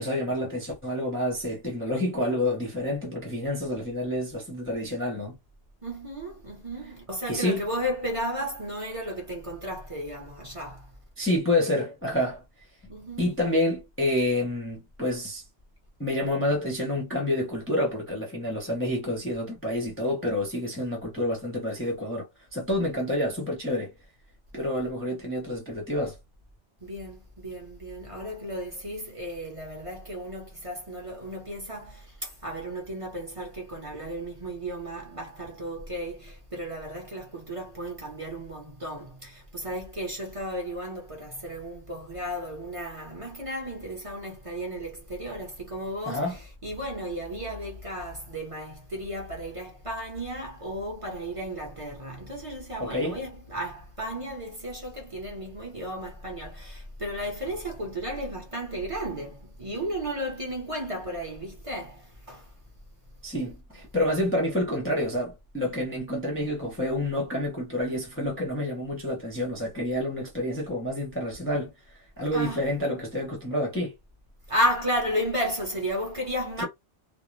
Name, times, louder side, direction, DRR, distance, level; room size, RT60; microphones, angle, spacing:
voice 1, 0.0-5.3 7.3-7.6 11.2-12.4 13.2-15.4 16.0-23.9 24.5-26.2 46.1-46.4 52.8-53.2 63.2-71.7 72.2-73.9 76.6-76.7, left 1 dB, 15° left, 0.6 m, -28 dB
voice 2, 5.8-10.9 12.9-13.3 22.8-22.9 26.8-62.5 72.3-72.6 74.5-76.6, equal, 30° right, 0.8 m, -34 dB
2.4 x 2.0 x 3.1 m
omnidirectional pair, 1.2 m